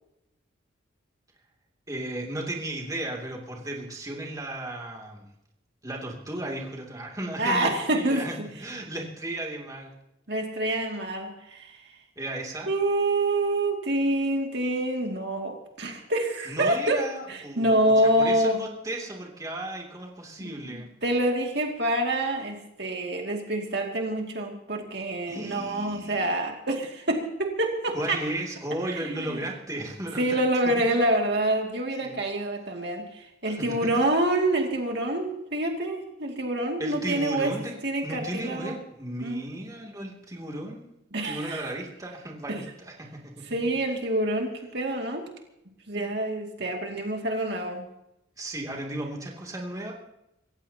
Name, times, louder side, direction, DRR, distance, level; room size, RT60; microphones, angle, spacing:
voice 1, 1.9-5.3 5.8-9.9 12.2-12.7 16.5-20.9 25.2-26.3 27.9-30.3 30.6-30.9 32.0-32.2 33.5-34.1 36.8-37.7 38.0-40.9 41.2-43.3 48.4-49.9, right 1 dB, 20° right, -1 dB, 2.7 m, -35 dB
voice 2, 7.4-8.3 10.3-11.7 12.7-18.6 20.4-28.2 28.9-29.4 30.2-37.5 37.8-38.7 39.2-39.4 41.1-41.7 42.5-42.6 43.5-45.3 45.9-47.8, right 1 dB, 60° right, 1 dB, 2.4 m, -27 dB
27.0 x 15.5 x 2.9 m, 0.87 s
head